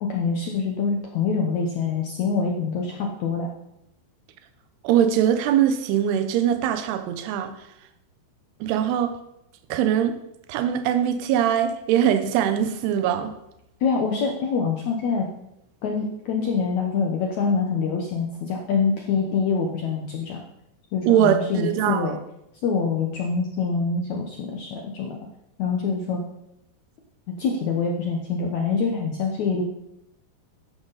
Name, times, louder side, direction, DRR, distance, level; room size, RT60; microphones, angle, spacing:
voice 1, 0.0-3.5 13.8-15.3 15.8-20.4 20.9-22.2 22.6-25.2 25.6-26.2 27.4-29.6, left 5 dB, 70° left, 1 dB, 1.8 m, -25 dB
voice 2, 4.8-7.5 8.6-9.2 9.7-10.1 10.5-13.3 21.1-22.1, right 9 dB, 80° right, 9 dB, 2.9 m, -22 dB
13.0 x 10.5 x 4.1 m, 0.83 s
omnidirectional pair, 4.7 m